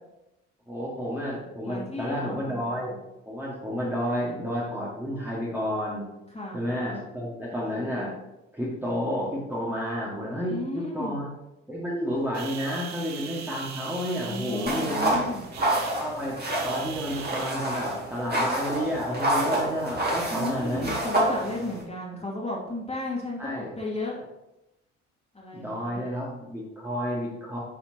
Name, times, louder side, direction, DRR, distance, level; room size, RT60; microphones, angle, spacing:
voice 1, 0.7-3.0 3.3-6.0 6.5-8.2 8.5-11.3 11.7-15.2 16.0-20.9 23.4-23.7 25.5-27.6, equal, 5° right, -6 dB, 2.0 m, -31 dB
voice 2, 1.6-2.4 6.3-6.6 10.5-11.2 14.3-15.4 20.3-24.2 25.3-26.1, left 2 dB, 15° left, -4 dB, 2.4 m, -34 dB
sound 1, 12.3-17.5, right 8 dB, 50° right, 0.7 m, -40 dB
sound 2, 14.7-21.8, right 1 dB, 25° right, 2.2 m, -28 dB
8.8 x 4.2 x 2.9 m, 0.92 s
hypercardioid pair, 50°, 37 cm